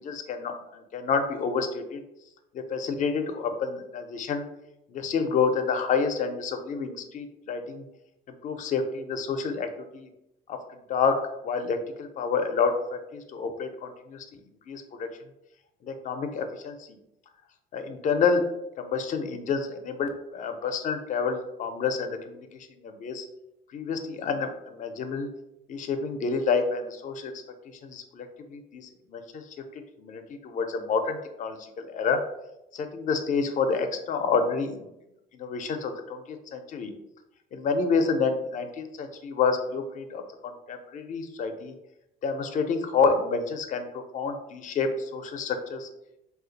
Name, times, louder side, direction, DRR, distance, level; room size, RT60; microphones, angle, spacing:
voice 1, 0.0-2.0 2.5-4.4 4.9-7.8 8.3-10.1 10.5-14.2 14.7-15.1 15.8-17.0 17.7-18.4 18.8-23.3 23.7-25.3 25.7-27.3 27.8-29.4 30.0-31.6 31.8-32.2 32.7-34.9 35.3-36.9 37.5-41.7 42.2-45.9, left 5 dB, 50° left, 7 dB, 0.5 m, -29 dB
2.5 x 2.3 x 3.9 m, 0.87 s
cardioid pair, 110°, 17 cm